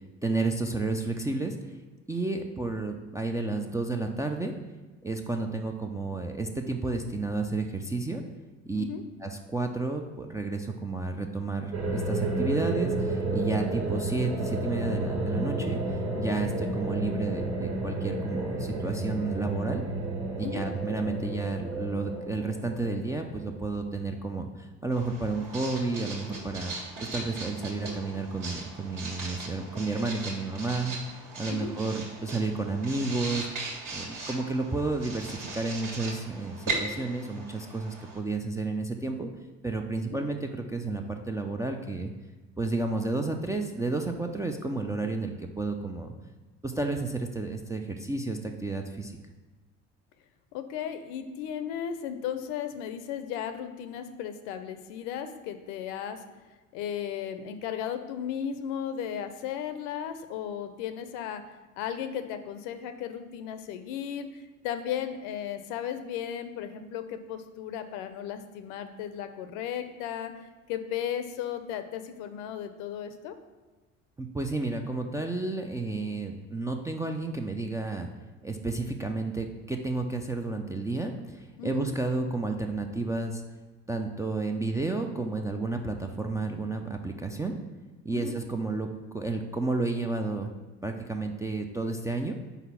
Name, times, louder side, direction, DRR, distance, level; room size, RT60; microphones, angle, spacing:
voice 1, 0.2-1.6 2.1-4.5 5.0-8.2 8.7-8.8 9.2-19.8 20.4-26.7 27.0-33.5 33.9-39.3 39.6-42.1 42.6-46.1 46.6-49.1 74.2-78.1 78.4-83.4 83.9-87.5 88.0-88.9 89.1-90.5 90.8-92.4, right 3 dB, 10° right, 2 dB, 0.3 m, -31 dB
sound 1, 11.7-23.8, right 2 dB, 35° right, 1.6 m, -31 dB
Writing, 24.9-38.2, right 2 dB, 55° right, 1.6 m, -39 dB
voice 2, 50.5-56.2 56.7-61.4 61.8-70.3 70.7-73.4 81.6-81.9 88.1-88.4, left 9 dB, 65° left, 10 dB, 0.6 m, -35 dB
4.5 x 4.1 x 5.7 m, 1.3 s
hypercardioid pair, 60°, 37 cm